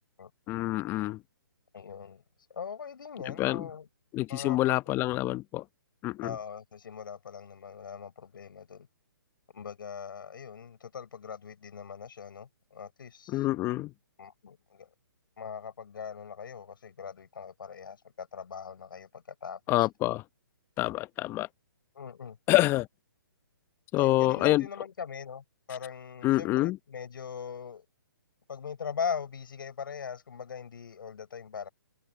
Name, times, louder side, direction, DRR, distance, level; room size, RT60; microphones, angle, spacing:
voice 1, 0.5-1.2 3.3-3.7 4.1-5.6 6.0-6.3 13.3-13.9 19.7-20.2 20.8-21.5 22.5-22.9 23.9-24.6 26.2-26.8, left 17 dB, 20° left, 0.8 m, -26 dB
voice 2, 1.7-2.2 2.5-3.9 4.3-4.8 6.2-8.9 9.5-13.5 14.2-14.9 15.4-19.9 21.9-22.4 24.0-27.9 28.5-31.7, left 7 dB, 70° left, 5.9 m, -40 dB
hypercardioid pair, 145°, 12 cm